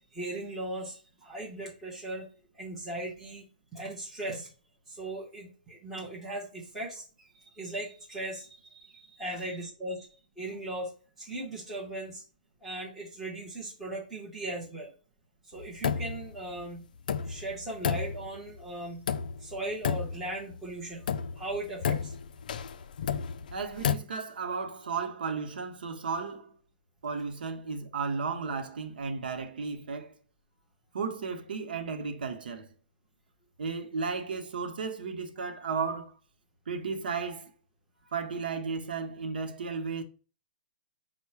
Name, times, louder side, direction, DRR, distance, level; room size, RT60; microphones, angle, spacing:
voice 1, 0.1-2.3 2.5-3.5 3.7-4.5 4.9-7.0 7.5-10.1 10.4-10.9 11.2-12.2 12.6-14.9 15.4-16.8 17.2-19.1 19.4-21.1 21.4-22.1, right 1 dB, 5° right, 0.9 m, -38 dB
sound 1, 15.6-16.3 16.6-16.7 17.1-18.6 19.1-19.6 19.8-20.6 21.0-24.0, left 7 dB, 65° left, 0.3 m, -31 dB
voice 2, 23.5-26.5 27.0-30.1 30.9-32.7 33.6-36.1 36.7-37.5 38.1-40.0, right 5 dB, 85° right, 0.8 m, -34 dB
5.4 x 2.1 x 4.6 m
hypercardioid pair, 170°, 5 cm